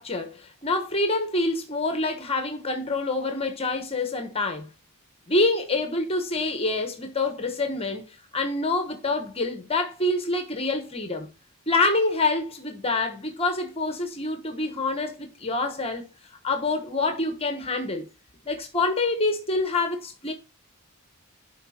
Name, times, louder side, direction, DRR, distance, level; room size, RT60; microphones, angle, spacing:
voice 1, 0.0-4.7 5.3-8.1 8.3-11.3 11.7-16.1 16.4-18.1 18.4-20.3, left 2 dB, 25° left, 1.2 m, -26 dB
11.5 x 4.7 x 4.4 m
head